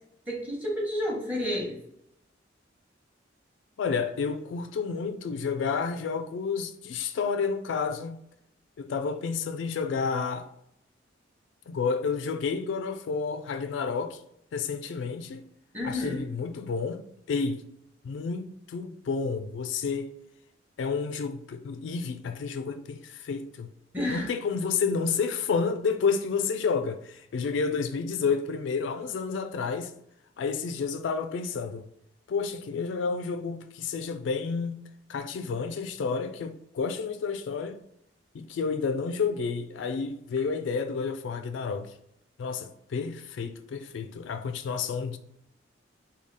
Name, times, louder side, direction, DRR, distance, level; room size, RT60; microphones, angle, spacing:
voice 1, 0.3-1.8 15.7-16.2 23.9-24.3, left 1 dB, 10° right, 0.9 m, -30 dB
voice 2, 3.8-8.2 8.8-10.5 11.7-14.2 14.5-15.4 15.8-17.6 18.0-20.1 20.8-23.7 24.1-29.9 30.4-31.9 32.3-34.8 35.1-37.8 38.3-41.9 42.4-45.2, left 5 dB, 80° left, 0.3 m, -30 dB
3.6 x 2.3 x 3.2 m
head